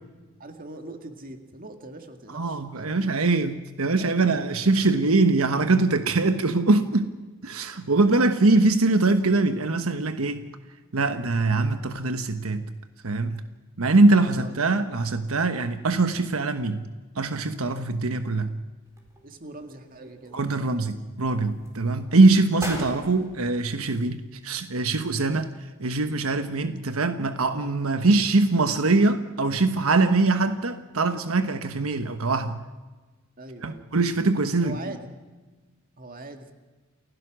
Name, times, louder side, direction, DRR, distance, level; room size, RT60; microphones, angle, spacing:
voice 1, 0.4-3.5 4.0-4.6 7.8-7.9 14.2-14.5 19.2-20.5 33.4-33.9 34.6-35.1 36.0-36.5, right 2 dB, 40° right, 2.1 m, -42 dB
voice 2, 2.3-7.1 7.4-10.5 10.9-12.7 13.0-13.4 13.8-16.9 17.1-18.6 20.3-32.6 33.6-34.8, right 3 dB, 90° right, 1.2 m, -22 dB
sound 1, 18.9-19.6 20.0-20.9 21.5-21.8 22.3-22.4 22.6-24.5 24.8-24.9, equal, 15° right, 4.3 m, -39 dB
29.0 x 16.0 x 6.2 m
head